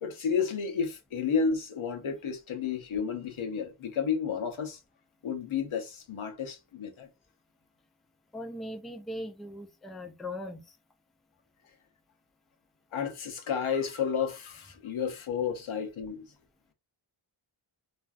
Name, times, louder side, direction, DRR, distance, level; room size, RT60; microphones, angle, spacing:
voice 1, 0.0-4.8 5.2-7.1 12.9-16.2, left 6 dB, 75° left, 0.8 m, -31 dB
voice 2, 8.3-10.8, left 1 dB, ahead, 0.4 m, -39 dB
2.5 x 2.5 x 2.3 m
wide cardioid pair, 70°, 49 cm